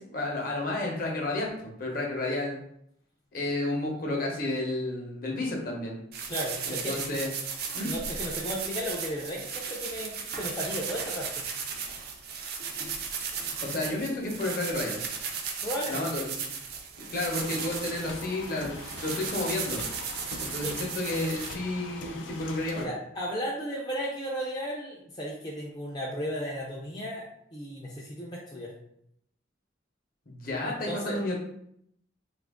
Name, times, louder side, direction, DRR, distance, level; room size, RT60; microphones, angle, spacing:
voice 1, 0.0-2.6 3.3-6.0 6.7-7.3 7.7-7.9 13.6-15.0 15.9-16.4 17.1-19.8 20.4-22.9 30.3-31.4, left 2 dB, 50° left, 0 dB, 0.8 m, -31 dB
sound 1, 6.1-21.5, right 6 dB, 55° right, 0.4 m, -36 dB
voice 2, 6.3-6.9 7.8-11.4 15.6-16.0 20.6-20.8 22.1-22.2 22.7-27.3 27.5-28.7 30.6-31.2, equal, 20° left, -4 dB, 0.4 m, -35 dB
sound 2, 17.4-22.9, left 3 dB, 85° left, 0.5 m, -42 dB
2.8 x 2.4 x 3.5 m, 0.72 s
head